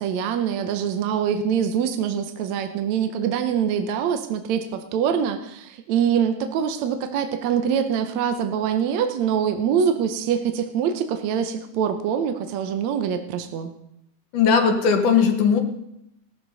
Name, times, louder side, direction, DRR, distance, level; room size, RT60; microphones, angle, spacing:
voice 1, 0.0-13.7, right 8 dB, 75° right, 7 dB, 2.1 m, -24 dB
voice 2, 14.3-15.6, left 6 dB, 85° left, 4 dB, 3.1 m, -18 dB
18.0 x 13.0 x 4.0 m, 0.79 s
omnidirectional pair, 3.5 m